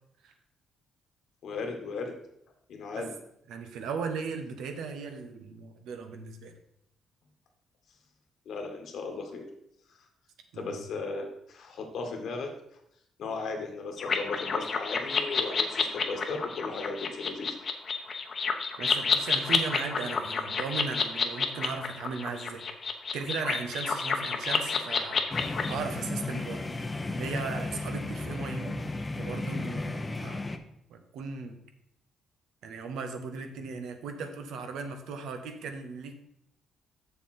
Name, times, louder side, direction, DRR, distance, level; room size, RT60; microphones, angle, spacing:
voice 1, 1.4-2.1 2.7-3.1 8.5-9.5 10.5-12.5 13.2-17.5, left 4 dB, 70° left, 3 dB, 1.8 m, -36 dB
voice 2, 3.5-6.5 10.5-10.8 18.8-22.7 23.1-25.2 25.7-26.7 27.2-28.8 29.2-30.4 30.9-31.6 32.6-36.1, right 5 dB, 85° right, 6 dB, 1.1 m, -37 dB
sound 1, 14.0-25.8, left 5 dB, 45° left, 1.0 m, -29 dB
sound 2, 25.3-30.6, left 2 dB, 20° left, 0.8 m, -34 dB
7.0 x 6.9 x 4.4 m, 0.77 s
cardioid pair, 90°, 0 cm